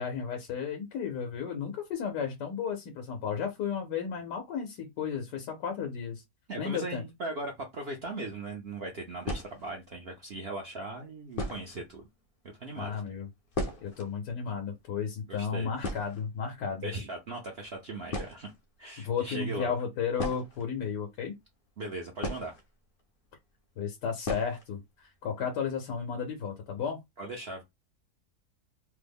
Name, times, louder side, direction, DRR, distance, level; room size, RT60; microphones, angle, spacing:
voice 1, 0.0-6.2 6.6-7.0 12.7-13.3 13.8-16.9 19.0-21.3 23.8-27.0, left 6 dB, 85° left, 1.3 m, -33 dB
voice 2, 6.5-12.1 12.6-13.0 15.3-15.7 16.8-18.5 18.8-19.7 21.8-22.5 27.2-27.6, right 2 dB, 65° right, 0.6 m, -38 dB
sound 1, 8.3-8.4 9.2-9.9 10.8-10.9 11.3-11.9 12.2-12.3 12.5-12.7 13.0-14.1 14.4-14.5 14.8-15.1 15.4-15.5 15.8-16.7 17.6-17.8 18.1-18.6 20.1-21.2 22.2-23.0 23.3-23.4 24.2-24.7 25.0-25.1 25.5-25.6 26.0-26.3, left 1 dB, 65° left, 0.5 m, -37 dB
3.3 x 2.0 x 3.4 m
omnidirectional pair, 1.7 m